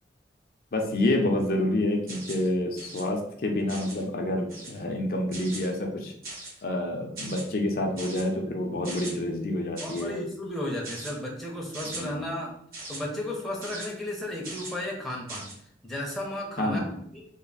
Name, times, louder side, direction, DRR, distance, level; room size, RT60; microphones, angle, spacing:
voice 1, 0.7-6.1 6.6-10.2 11.9-12.3 16.6-17.0, left 1 dB, 55° left, 2 dB, 0.5 m, -28 dB
sound 1, 2.1-2.5 2.8-3.0 3.7-4.0 4.5-4.8 5.3-5.7 6.2-6.6 7.2-7.4 8.0-8.2 8.8-9.1 9.8-10.1 10.8-11.1 11.7-12.0 12.7-13.0 13.6-13.9 14.4-14.8 15.3-15.5, right 2 dB, 55° right, 1.3 m, -39 dB
voice 2, 9.8-12.5 12.9-15.5 15.8-16.8 17.1-17.3, left 1 dB, ahead, -3 dB, 0.6 m, -34 dB
3.3 x 2.1 x 3.9 m, 0.69 s
head